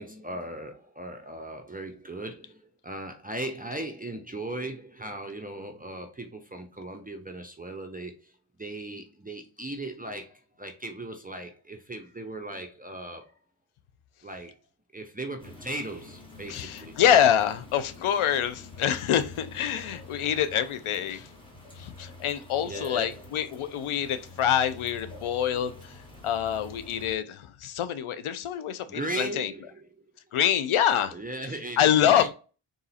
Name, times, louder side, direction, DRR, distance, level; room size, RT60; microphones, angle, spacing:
voice 1, 0.0-13.4 14.2-14.5 14.9-17.0 22.6-23.2 28.9-29.9 31.1-32.3, right 1 dB, 20° right, 0.6 m, -38 dB
sound 1, 15.4-27.1, left 2 dB, 10° left, 1.8 m, -47 dB
voice 2, 16.5-21.3 21.8-25.9 26.2-29.5 30.3-31.2 31.8-32.3, left 9 dB, 85° left, 0.6 m, -25 dB
3.9 x 2.7 x 4.1 m
cardioid pair, 65°, 49 cm